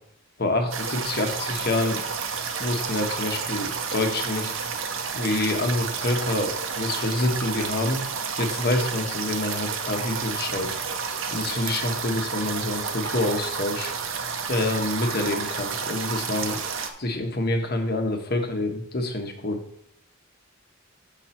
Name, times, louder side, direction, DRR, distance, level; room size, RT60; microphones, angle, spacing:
voice 1, 0.4-2.0 2.6-4.6 5.1-8.0 8.4-10.7 11.3-13.9 14.5-16.6 17.0-19.6, left 2 dB, 50° left, 4 dB, 1.2 m, -27 dB
sound 1, 0.7-16.9, right 5 dB, 75° right, 0.8 m, -30 dB
7.5 x 5.9 x 4.4 m, 0.70 s
head